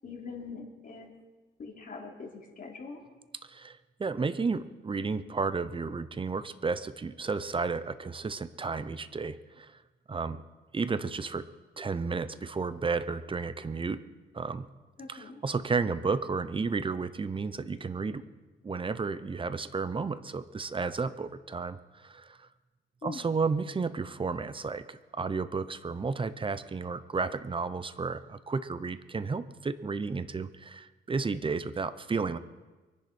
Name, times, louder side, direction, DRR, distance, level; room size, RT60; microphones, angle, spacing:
voice 1, 0.0-1.1 1.6-3.0 15.0-15.4 23.0-23.3, left 4 dB, 45° left, -1 dB, 3.4 m, -43 dB
voice 2, 3.4-9.8 10.1-10.4 10.7-11.5 11.8-14.0 14.3-14.7 15.1-18.2 18.6-22.5 23.0-32.4, right 4 dB, 25° right, 13 dB, 0.8 m, -32 dB
23.5 x 10.5 x 4.4 m, 1.2 s
cardioid pair, 90°, 20 cm